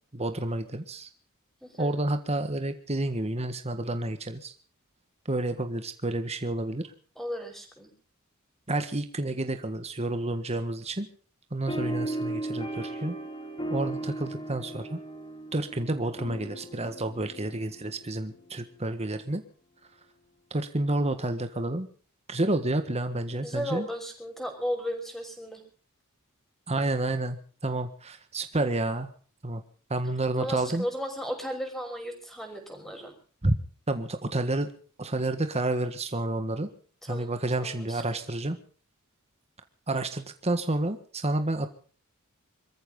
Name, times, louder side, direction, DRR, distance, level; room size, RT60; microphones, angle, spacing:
voice 1, 0.1-1.1 1.8-4.5 5.2-6.8 8.7-11.1 11.5-13.2 13.7-15.0 15.5-19.4 20.5-21.9 22.3-23.9 26.7-29.1 29.4-29.6 29.9-30.8 33.4-33.5 33.9-34.7 35.0-36.7 37.1-38.6 39.9-41.7, right 2 dB, 30° right, 8 dB, 1.6 m, -29 dB
voice 2, 1.6-1.9 7.2-7.9 23.4-25.6 30.4-33.1 37.0-37.3 37.6-38.2, equal, ahead, 3 dB, 5.7 m, -35 dB
sound 1, 11.7-18.6, right 2 dB, 25° left, 3.4 m, -36 dB
26.0 x 14.0 x 3.9 m, 0.42 s
head